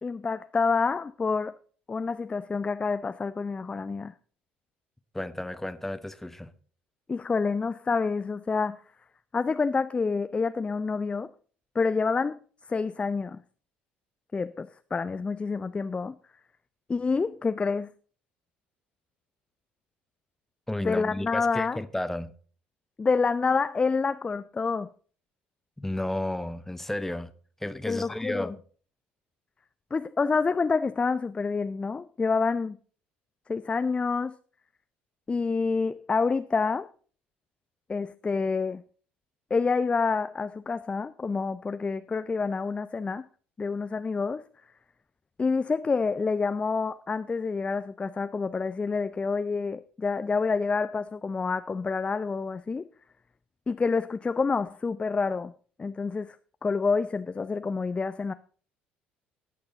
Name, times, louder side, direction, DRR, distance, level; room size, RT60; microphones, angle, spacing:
voice 1, 0.0-1.5 1.9-4.1 7.1-8.8 9.3-11.3 11.7-12.4 12.7-13.4 14.3-16.1 16.9-17.9 20.8-21.8 23.0-24.9 27.9-28.5 29.9-32.8 33.5-34.3 35.3-36.9 37.9-38.8 39.5-43.2 43.6-44.4 45.4-52.9 53.7-55.5 55.8-56.4 56.6-58.3, left 4 dB, 20° left, 0.5 m, -28 dB
voice 2, 5.1-6.5 20.7-22.3 25.8-27.3 27.6-28.6, left 1 dB, 5° left, 1.0 m, -32 dB
18.5 x 6.7 x 3.9 m
figure-of-eight pair, 55°, 5 cm